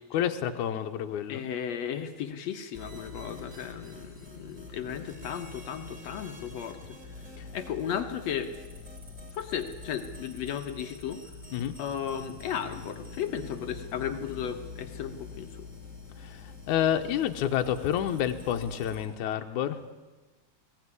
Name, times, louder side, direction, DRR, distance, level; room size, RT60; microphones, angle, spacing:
voice 1, 0.1-1.4 7.4-7.5 11.5-11.7 16.2-19.9, left 10 dB, 90° left, 6 dB, 2.4 m, -29 dB
voice 2, 1.3-6.8 7.5-8.5 9.3-11.2 11.8-15.5, left 8 dB, 70° left, 7 dB, 2.0 m, -35 dB
sound 1, 2.7-19.1, left 3 dB, 15° right, 3.8 m, -45 dB
21.0 x 16.0 x 9.7 m, 1.2 s
omnidirectional pair, 3.4 m